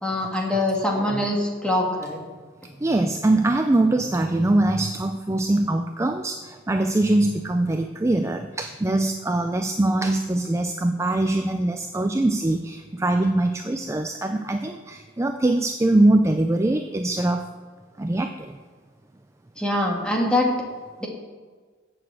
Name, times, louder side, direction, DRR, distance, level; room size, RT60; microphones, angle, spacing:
voice 1, 0.0-2.2 19.6-20.5 21.0-21.1, left 1 dB, 5° left, -1 dB, 1.9 m, -23 dB
voice 2, 2.8-17.5 18.0-18.6, right 2 dB, 15° right, 7 dB, 0.4 m, -22 dB
8.1 x 7.7 x 7.7 m, 1.5 s
head